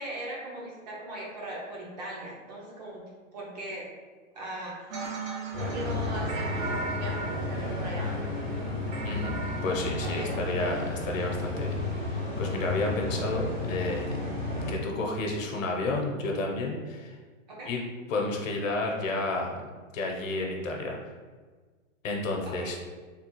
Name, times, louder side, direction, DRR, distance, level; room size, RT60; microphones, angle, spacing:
voice 1, 0.0-3.0 3.3-3.9 4.3-5.1 5.6-8.2 10.0-10.4 17.5-17.7 22.4-22.8, right 1 dB, 30° right, -4 dB, 0.6 m, -39 dB
sound 1, 4.9-11.0, right 4 dB, 70° right, 0.8 m, -39 dB
sound 2, 5.5-14.7, left 2 dB, 10° left, 0.4 m, -32 dB
voice 2, 9.6-14.2 14.7-17.2 17.7-17.8 18.1-19.7 19.9-21.0 22.0-22.8, left 2 dB, 70° left, 1 dB, 0.9 m, -31 dB
3.4 x 2.4 x 3.0 m, 1.4 s
hypercardioid pair, 170°, 40 cm